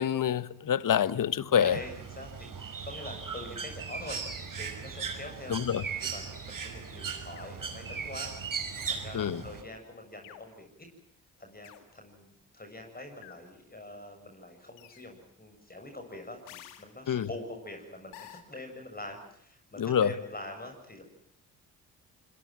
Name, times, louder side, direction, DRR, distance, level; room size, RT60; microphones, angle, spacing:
voice 1, 0.0-1.8 5.5-5.8 9.1-9.4 17.1-17.3 19.8-20.1, left 9 dB, 45° left, 1.4 m, -26 dB
Bird, 1.5-9.6, right 6 dB, 45° right, 5.9 m, -38 dB
voice 2, 1.6-4.2 4.6-5.5 5.9-8.3 8.7-10.7 11.4-21.0, left 1 dB, 20° left, 7.5 m, -44 dB
sound 1, 7.4-7.6 8.7-9.1 10.2-10.6 11.6-11.9 13.2-13.5 14.8-15.1 16.5-16.9 18.1-18.4, left 13 dB, 85° left, 2.4 m, -50 dB
25.5 x 23.0 x 7.6 m
hypercardioid pair, 55°, 44 cm